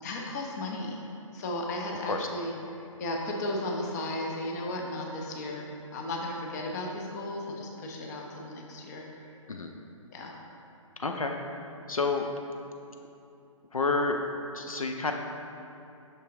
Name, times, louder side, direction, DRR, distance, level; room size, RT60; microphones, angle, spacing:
voice 1, 0.0-1.0 1.3-9.0 10.1-10.4, left 1 dB, 30° left, 0 dB, 0.8 m, -35 dB
voice 2, 11.0-11.4 11.9-12.3 13.7-14.2 14.5-15.1, left 3 dB, 85° left, 3 dB, 0.5 m, -29 dB
6.0 x 5.5 x 3.7 m, 2.7 s
figure-of-eight pair, 130°, 17 cm